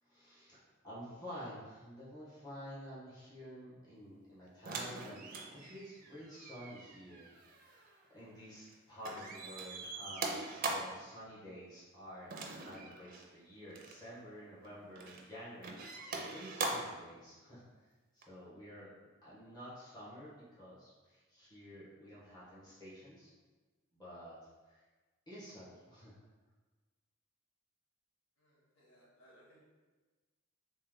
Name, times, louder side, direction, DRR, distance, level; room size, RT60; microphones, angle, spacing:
voice 1, 0.0-23.3 23.9-24.4 24.6-24.8 25.3-26.1, equal, 20° left, -10 dB, 1.3 m, -51 dB
sound 1, 4.7-8.7 9.0-11.1 12.3-13.3 13.7-14.0 14.6-15.3 15.6-17.0 18.2-18.3, right 3 dB, 45° right, 0.5 m, -42 dB
voice 2, 28.4-29.6, equal, 70° left, -7 dB, 1.3 m, -64 dB
3.4 x 3.1 x 3.6 m, 1.3 s
head